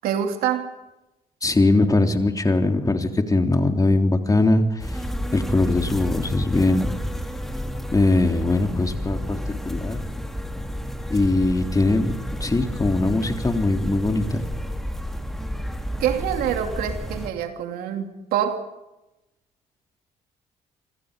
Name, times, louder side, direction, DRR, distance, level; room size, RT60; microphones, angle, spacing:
voice 1, 0.0-0.7 16.0-18.6, right 9 dB, 80° right, 5 dB, 2.8 m, -25 dB
voice 2, 1.4-5.0 5.3-7.0 7.9-10.0 11.1-14.4, left 2 dB, 25° left, 4 dB, 3.6 m, -21 dB
sound 1, 4.8-17.3, equal, ahead, 3.3 m, -31 dB
27.5 x 25.0 x 5.3 m, 0.94 s
supercardioid pair, 65°, 15 cm